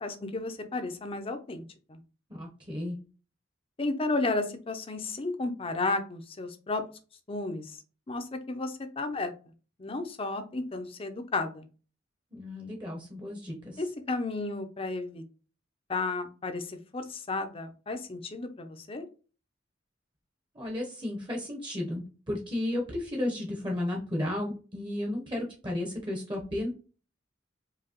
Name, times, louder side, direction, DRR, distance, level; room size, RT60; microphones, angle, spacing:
voice 1, 0.0-1.6 1.9-2.0 3.8-6.8 7.3-7.7 8.1-9.3 9.8-11.7 13.8-15.2 15.9-19.1, left 3 dB, 30° left, 8 dB, 0.6 m, -33 dB
voice 2, 2.3-3.0 12.3-13.8 20.5-26.7, left 1 dB, 25° right, 1 dB, 0.9 m, -33 dB
4.8 x 2.8 x 2.9 m, 0.36 s
head